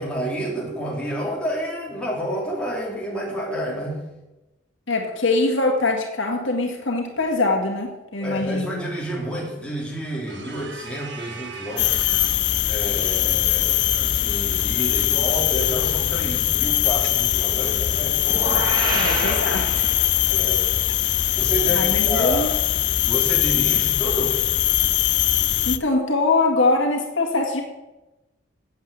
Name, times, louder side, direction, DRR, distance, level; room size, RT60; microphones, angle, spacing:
voice 1, 0.0-4.0 8.2-19.4 20.3-20.7 21.3-22.6 23.0-24.4, right 1 dB, 5° left, -5 dB, 3.0 m, -30 dB
voice 2, 4.9-8.8 18.9-19.7 21.7-22.5 25.7-27.6, left 2 dB, 75° left, 1 dB, 2.0 m, -23 dB
sound 1, 10.3-12.5, right 4 dB, 60° right, 1.3 m, -39 dB
sound 2, 11.8-25.8, left 13 dB, 55° left, 0.5 m, -21 dB
sound 3, 18.2-20.4, right 1 dB, 20° right, 2.2 m, -27 dB
8.4 x 8.0 x 8.3 m, 1.0 s
head